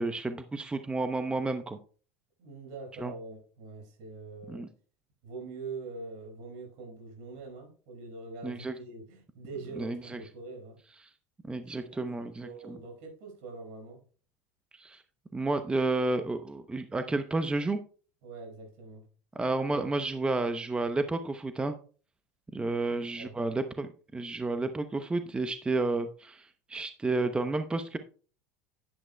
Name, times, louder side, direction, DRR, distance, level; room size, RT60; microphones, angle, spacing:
voice 1, 0.0-1.8 3.0-3.1 4.5-4.7 8.4-8.7 9.8-10.2 11.5-12.8 14.7-15.0 15.3-17.8 19.3-21.8 22.5-28.0, right 2 dB, 15° right, 0.8 m, -31 dB
voice 2, 2.4-4.6 5.2-10.8 11.8-12.1 12.4-14.0 18.2-19.1 23.2-23.3, right 3 dB, 70° right, 5.5 m, -44 dB
10.5 x 10.5 x 2.3 m
hypercardioid pair, 100°, 8 cm